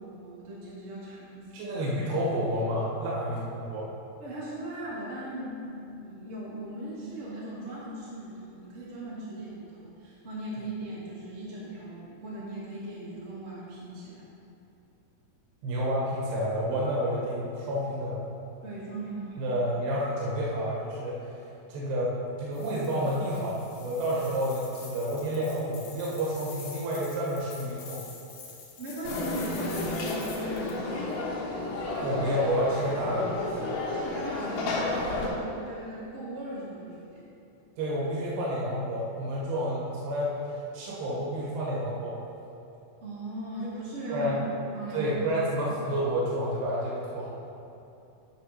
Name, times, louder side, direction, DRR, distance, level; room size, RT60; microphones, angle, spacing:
voice 1, 0.0-1.7 4.2-14.3 18.6-19.4 28.8-31.1 33.9-37.2 43.0-45.1, right 1 dB, 45° right, -8 dB, 0.8 m, -38 dB
voice 2, 1.5-3.9 15.6-18.2 19.4-21.3 21.7-28.0 32.0-33.3 37.8-42.2 44.1-44.4 44.9-47.3, equal, 75° right, -6 dB, 3.2 m, -29 dB
sound 1, 22.5-30.8, left 5 dB, 70° left, 2.0 m, -46 dB
Conversation / Crowd, 29.0-35.3, left 2 dB, 90° left, 3.2 m, -32 dB
9.1 x 4.3 x 5.6 m, 2.8 s
omnidirectional pair, 4.7 m